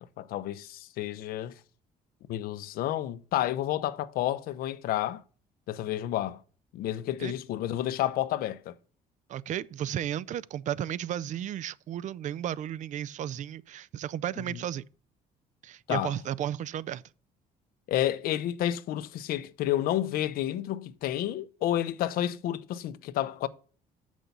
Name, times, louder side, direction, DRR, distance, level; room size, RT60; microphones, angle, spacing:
voice 1, 0.2-1.6 2.3-5.2 5.7-6.4 6.7-8.7 14.5-14.6 15.9-16.1 17.9-23.5, left 12 dB, 75° left, 0.6 m, -30 dB
voice 2, 9.3-14.8 15.6-17.0, right 10 dB, 55° right, 0.4 m, -34 dB
6.8 x 6.2 x 6.8 m
cardioid pair, 95°, 15 cm